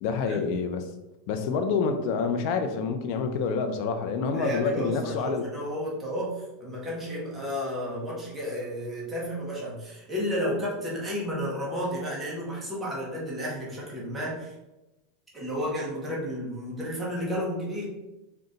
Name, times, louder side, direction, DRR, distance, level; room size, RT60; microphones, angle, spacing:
voice 1, 0.0-0.8 1.3-5.4, left 5 dB, 40° left, 7 dB, 0.4 m, -27 dB
voice 2, 4.3-14.5 15.3-17.9, equal, 5° right, -6 dB, 0.8 m, -32 dB
3.8 x 2.2 x 3.8 m, 0.99 s
supercardioid pair, 180°, 0 cm